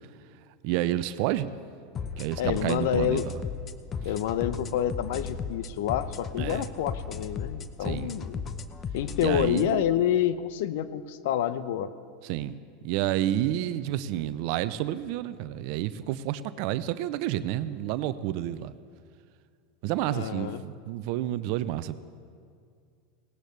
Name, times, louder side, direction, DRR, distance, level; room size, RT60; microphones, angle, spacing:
voice 1, 0.6-1.6 2.2-3.4 6.4-6.6 7.8-8.2 9.2-9.8 12.2-12.6 12.8-18.7 19.8-22.0, right 13 dB, 60° right, 14 dB, 0.5 m, -30 dB
sound 1, 1.9-9.7, left 5 dB, 35° left, 0.8 m, -36 dB
voice 2, 2.4-3.2 4.0-8.4 8.9-11.9 20.1-20.6, left 10 dB, 70° left, 14 dB, 0.7 m, -28 dB
19.0 x 18.0 x 3.3 m, 2.2 s
hypercardioid pair, 95°, 0 cm